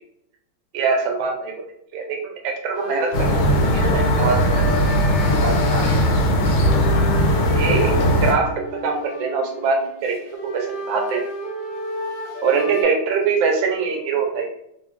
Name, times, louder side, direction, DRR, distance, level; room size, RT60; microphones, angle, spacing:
voice 1, 0.7-1.5 1.9-4.7 5.4-5.9 7.5-10.2 10.4-11.2 12.4-14.5, right 5 dB, 75° right, 2 dB, 1.4 m, -23 dB
sound 1, 2.7-12.8, left 1 dB, 70° left, 1.6 m, -31 dB
sound 2, 3.1-8.3, equal, 90° left, 1.6 m, -18 dB
3.7 x 2.3 x 3.1 m, 0.74 s
omnidirectional pair, 2.2 m